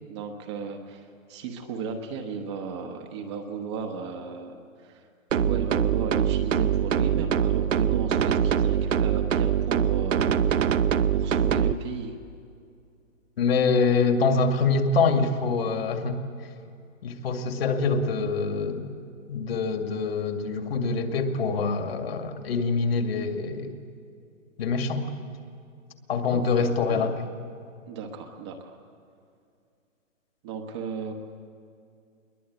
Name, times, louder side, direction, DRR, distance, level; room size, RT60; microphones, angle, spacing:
voice 1, 0.0-4.6 4.8-5.1 5.3-10.8 11.1-12.1 26.3-27.1 27.9-28.8 30.4-31.1, right 5 dB, 20° right, 4 dB, 1.1 m, -35 dB
sound 1, 5.3-11.7, right 8 dB, 70° right, 0.9 m, -23 dB
voice 2, 13.4-16.2 17.0-18.9 19.3-23.8 24.6-25.1 26.1-27.3, left 4 dB, 50° left, 5 dB, 2.3 m, -25 dB
22.5 x 20.0 x 8.7 m, 2.5 s
hypercardioid pair, 160°, 39 cm